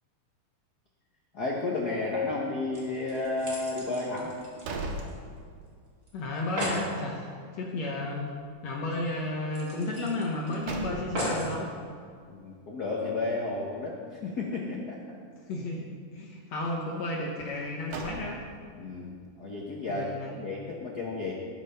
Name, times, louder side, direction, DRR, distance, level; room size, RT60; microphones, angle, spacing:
voice 1, 1.3-4.4 12.3-15.2 18.8-21.3, left 3 dB, 80° left, -2 dB, 0.8 m, -32 dB
sound 1, 2.4-2.5 2.7-5.4 5.7-5.8 6.1-6.2 6.4-6.9 8.4-8.5 8.8-8.9 9.5-10.5 11.1-11.6 12.3-12.4, equal, 35° right, 3.6 m, -36 dB
sound 2, 4.3-5.9 6.3-6.4 10.2-11.5 17.5-18.8, right 2 dB, 75° right, 3.0 m, -39 dB
voice 2, 6.1-7.3 7.5-8.3 8.6-11.7 15.5-18.4 19.9-20.4, left 2 dB, 60° left, -1 dB, 2.0 m, -33 dB
19.5 x 7.2 x 5.7 m, 2.2 s
omnidirectional pair, 3.9 m